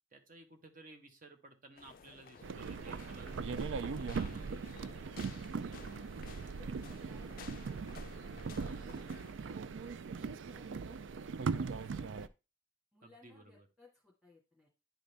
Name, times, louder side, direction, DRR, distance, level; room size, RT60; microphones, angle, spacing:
voice 1, 0.1-4.6 8.6-8.9 13.0-13.7, right 2 dB, 45° right, 5 dB, 1.2 m, -56 dB
sound 1, 1.8-9.3, left 6 dB, 50° left, 0.4 m, -56 dB
voice 2, 1.9-3.5 4.6-5.1 6.4-8.0 8.5-12.3 12.9-14.7, left 3 dB, ahead, -5 dB, 1.8 m, -65 dB
sound 2, 2.4-12.3, right 5 dB, 80° right, 0.4 m, -40 dB
10.5 x 3.9 x 3.4 m, 0.28 s
head